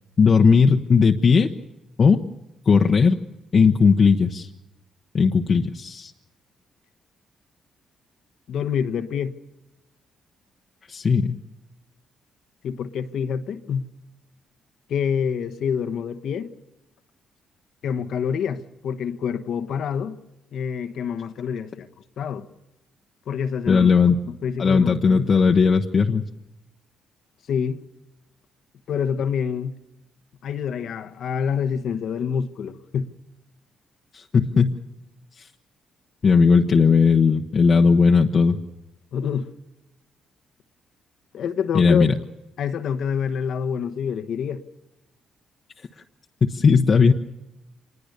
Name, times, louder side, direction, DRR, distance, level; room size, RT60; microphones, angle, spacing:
voice 1, 0.2-1.5 2.0-2.2 2.7-3.2 3.5-4.5 5.1-6.1 10.9-11.4 23.7-24.2 24.6-26.2 34.1-34.7 36.2-38.6 41.7-42.1 46.5-47.1, left 5 dB, 45° left, 1.1 m, -17 dB
voice 2, 8.5-9.3 12.6-13.9 14.9-16.5 17.8-20.2 20.5-21.9 22.2-22.5 23.3-23.9 24.4-25.3 27.5-27.8 28.9-29.8 30.4-33.1 39.1-39.5 41.3-42.1 42.6-44.6, left 7 dB, 70° left, 1.2 m, -27 dB
25.5 x 20.5 x 6.8 m
cardioid pair, 90°, 0 cm